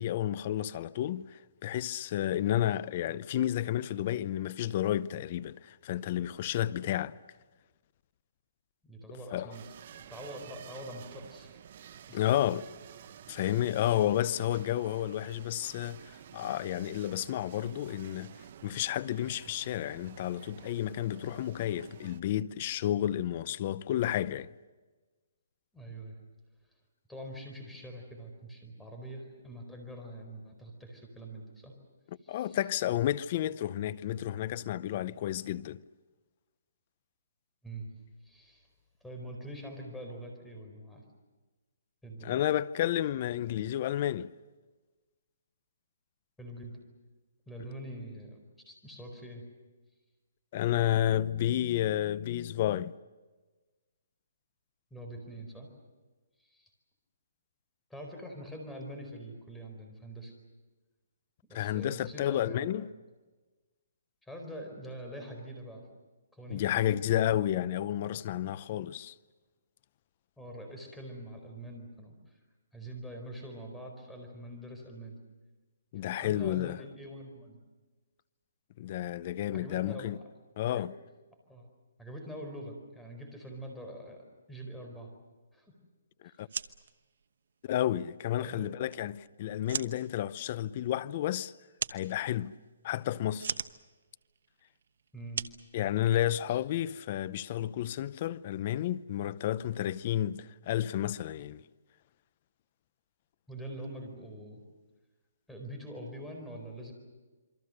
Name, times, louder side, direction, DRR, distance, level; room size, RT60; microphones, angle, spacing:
voice 1, 0.0-7.2 9.3-9.5 12.1-12.7 13.3-16.0 16.3-18.3 18.6-24.5 32.3-35.8 42.2-44.3 50.5-52.9 61.5-62.9 66.5-69.1 75.9-76.8 78.8-80.2 80.6-80.9 86.4-86.5 87.6-91.5 91.9-92.5 92.8-93.6 95.7-101.6, left 12 dB, 35° left, 0.7 m, -31 dB
voice 2, 8.8-9.6 10.1-11.6 12.1-12.3 25.7-26.1 27.1-31.7 32.2-32.6 37.6-37.9 38.2-38.7 39.0-41.0 42.0-42.3 46.4-46.8 47.5-48.4 48.7-49.4 54.9-55.7 56.5-56.7 57.9-60.3 61.5-62.7 64.2-65.8 66.3-66.9 70.4-72.4 72.7-75.2 76.0-77.6 79.5-80.9 81.5-81.7 82.0-85.1 85.5-85.7 86.2-86.4 88.3-88.7 95.1-95.4 103.5-104.6 105.5-106.9, right 1 dB, 5° left, 4.6 m, -44 dB
sound 1, 9.5-22.2, right 9 dB, 45° right, 1.0 m, -51 dB
sound 2, 86.3-96.5, right 6 dB, 65° right, 1.0 m, -42 dB
27.5 x 24.0 x 6.6 m
hypercardioid pair, 160°, 0 cm